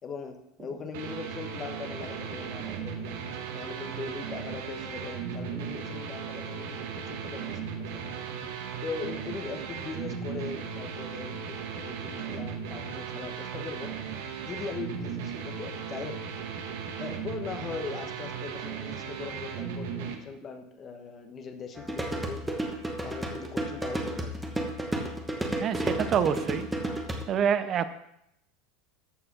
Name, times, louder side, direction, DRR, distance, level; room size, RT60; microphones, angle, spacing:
voice 1, 0.0-8.1 8.8-14.0 14.4-16.2 17.0-22.5 23.0-24.4, left 5 dB, 20° left, 6 dB, 1.1 m, -40 dB
sound 1, 0.9-20.1, right 6 dB, 70° right, 1.6 m, -37 dB
sound 2, 21.8-27.2, right 1 dB, 5° right, 1.1 m, -32 dB
voice 2, 25.6-26.7 27.3-27.9, right 8 dB, 25° right, 12 dB, 0.6 m, -26 dB
14.0 x 4.8 x 6.0 m, 0.79 s
supercardioid pair, 175°, 0 cm